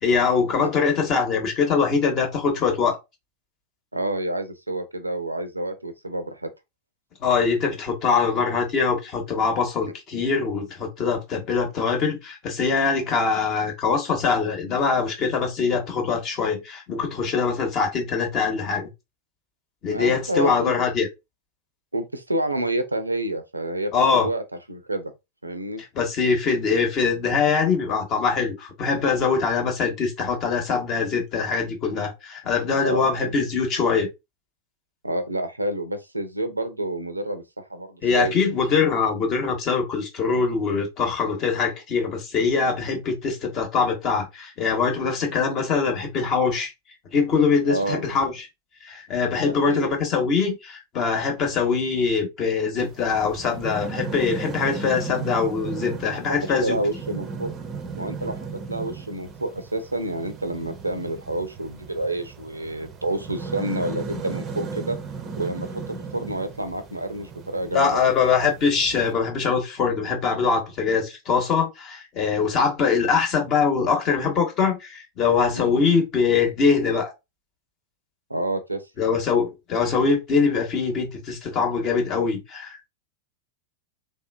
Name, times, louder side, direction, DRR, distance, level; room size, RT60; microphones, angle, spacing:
voice 1, 0.0-3.0 7.2-18.9 19.8-21.1 23.9-24.3 25.9-34.1 38.0-46.7 47.1-48.4 48.8-56.8 67.7-77.1 79.0-82.9, left 5 dB, 35° left, 1.1 m, -23 dB
voice 2, 3.9-6.5 19.9-20.8 21.9-24.4 24.7-25.1 25.4-25.8 32.8-33.4 35.0-38.3 47.7-48.1 49.5-49.9 56.4-57.5 57.9-58.4 58.7-65.0 65.4-68.1 75.5-75.8 78.3-79.0, right 1 dB, 85° right, 0.5 m, -29 dB
sound 1, 52.8-69.1, right 5 dB, 25° right, 0.6 m, -36 dB
3.2 x 2.7 x 2.2 m
figure-of-eight pair, 90°, 0 cm